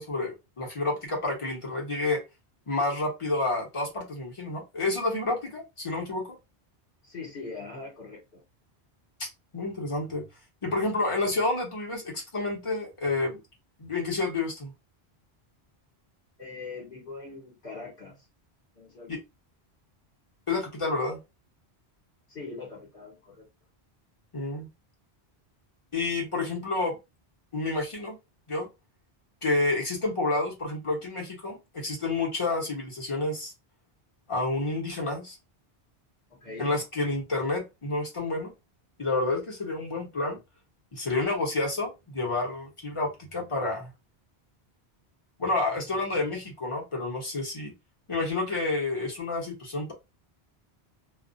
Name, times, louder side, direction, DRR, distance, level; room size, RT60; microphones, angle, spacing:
voice 1, 0.0-2.2 2.7-6.4 9.5-10.2 10.6-13.4 13.8-14.7 19.1-19.2 20.5-21.2 24.3-24.7 25.9-27.0 27.5-28.2 28.5-28.7 29.4-33.5 34.3-35.4 36.6-38.5 39.0-40.4 40.9-43.9 45.4-47.7 48.1-49.9, left 2 dB, 30° left, 0.9 m, -29 dB
voice 2, 7.0-8.4 16.4-18.2 18.7-19.1 22.3-23.5 36.3-36.7, left 3 dB, 60° left, 1.2 m, -41 dB
2.4 x 2.1 x 2.5 m
omnidirectional pair, 1.1 m